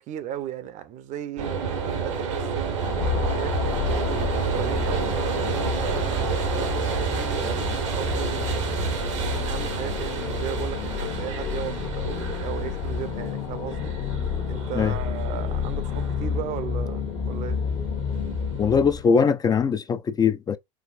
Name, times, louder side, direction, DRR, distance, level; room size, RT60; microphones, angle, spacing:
voice 1, 0.0-4.0 4.5-8.7 9.3-13.9 14.5-17.6, right 11 dB, 50° right, 0.7 m, -36 dB
sound 1, 1.4-19.0, right 6 dB, 80° right, 1.0 m, -30 dB
sound 2, 2.8-19.0, left 7 dB, 50° left, 1.1 m, -30 dB
voice 2, 18.6-20.6, left 6 dB, 25° left, 0.4 m, -21 dB
4.7 x 2.6 x 2.5 m
hypercardioid pair, 80°, 15 cm